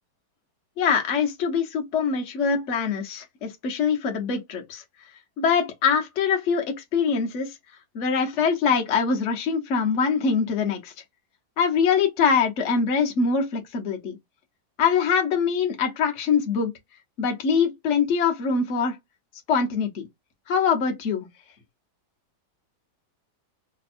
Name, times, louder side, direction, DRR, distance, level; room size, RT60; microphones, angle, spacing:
voice 1, 0.8-4.8 5.4-7.6 7.9-10.9 11.6-14.2 14.8-16.7 17.2-19.0 19.5-20.0 20.5-21.3, left 6 dB, 50° left, 1.2 m, -23 dB
3.4 x 2.2 x 4.3 m
omnidirectional pair, 1.9 m